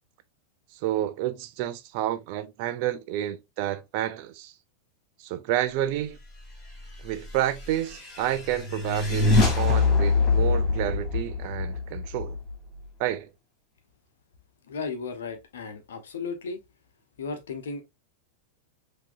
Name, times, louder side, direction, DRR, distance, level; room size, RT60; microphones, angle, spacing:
voice 1, 0.8-4.5 5.2-6.2 7.0-12.4 13.0-13.3, right 13 dB, 45° right, 0.5 m, -29 dB
sound 1, 7.3-12.9, left 3 dB, 30° left, 2.5 m, -24 dB
voice 2, 14.7-16.6 17.2-17.8, left 4 dB, 65° left, 1.0 m, -35 dB
5.8 x 2.9 x 2.5 m
figure-of-eight pair, 90°, 0 cm